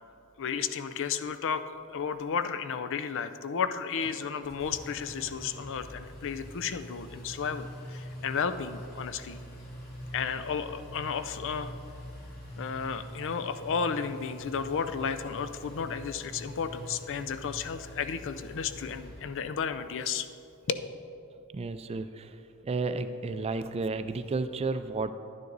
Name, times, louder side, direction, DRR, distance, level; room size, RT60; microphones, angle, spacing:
voice 1, 0.4-1.6 1.9-9.4 10.1-11.7 12.6-20.3 20.7-20.9, left 6 dB, 60° left, 11 dB, 0.5 m, -33 dB
Engine, 4.0-19.7, equal, 45° left, 2.6 m, -45 dB
voice 2, 21.5-25.1, right 3 dB, 30° right, 10 dB, 0.4 m, -32 dB
10.5 x 9.5 x 3.9 m, 2.7 s
head